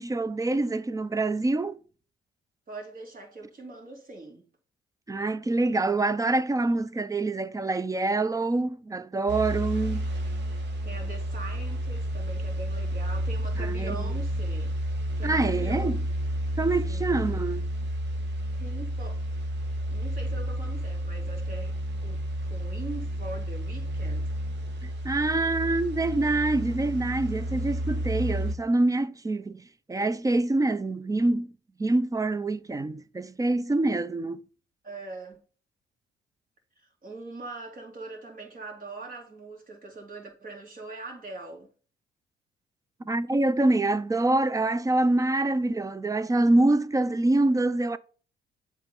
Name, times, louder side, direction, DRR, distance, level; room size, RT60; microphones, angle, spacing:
voice 1, 0.0-1.8 5.1-10.0 13.6-14.0 15.2-16.0 16.6-17.7 25.0-31.5 31.8-34.4 43.1-48.0, right 2 dB, 15° right, 0.4 m, -25 dB
voice 2, 2.7-4.4 10.8-14.7 15.2-15.9 16.8-17.2 18.5-19.4 19.9-21.8 22.0-24.3 34.8-35.4 36.8-41.7, right 3 dB, 45° right, 2.7 m, -42 dB
sound 1, 9.3-28.6, equal, 60° right, 1.4 m, -31 dB
7.9 x 3.7 x 5.3 m
cardioid pair, 90°, 20 cm